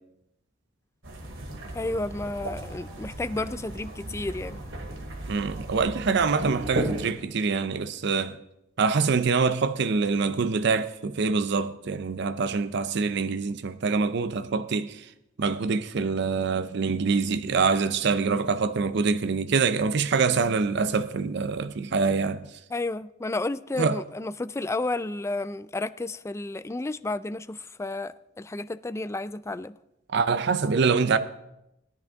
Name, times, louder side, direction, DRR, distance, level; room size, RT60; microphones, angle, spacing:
sound 1, 1.0-7.1, right 1 dB, 85° right, 2.4 m, -35 dB
voice 1, 1.7-4.6 22.7-29.7, left 2 dB, 15° left, 0.3 m, -32 dB
voice 2, 5.3-8.4 8.8-15.1 15.4-22.4 23.8-24.0 30.1-31.2, right 4 dB, 60° right, 0.5 m, -25 dB
17.5 x 10.5 x 3.5 m
head